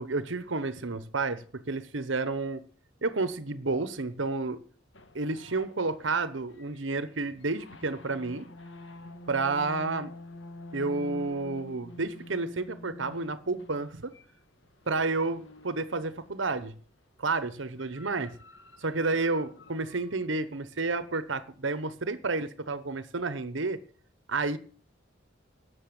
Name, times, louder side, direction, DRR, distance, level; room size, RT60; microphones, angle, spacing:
voice 1, 0.0-2.7 3.0-4.6 5.1-8.5 9.3-10.1 10.7-14.1 14.9-16.7 17.2-18.4 18.8-23.8 24.3-24.6, right 3 dB, 75° right, 1.1 m, -30 dB
sound 1, 4.9-16.7 17.6-20.2, left 1 dB, 70° left, 1.7 m, -48 dB
13.0 x 8.6 x 8.8 m
head